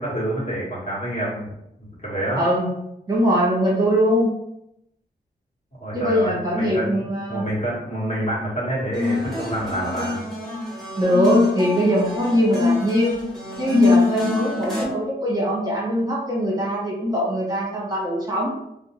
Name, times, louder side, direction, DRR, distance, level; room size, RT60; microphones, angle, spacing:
voice 1, 0.0-1.5 2.0-2.4 5.8-10.2, right 1 dB, 40° left, -7 dB, 1.4 m, -27 dB
voice 2, 2.4-2.7 3.1-4.3 5.9-7.5 11.0-13.2 13.6-18.5, equal, 20° right, -6 dB, 0.9 m, -21 dB
sound 1, 8.9-14.8, left 4 dB, ahead, 1.1 m, -24 dB
2.5 x 2.1 x 3.0 m, 0.82 s
wide cardioid pair, 100°, 18 cm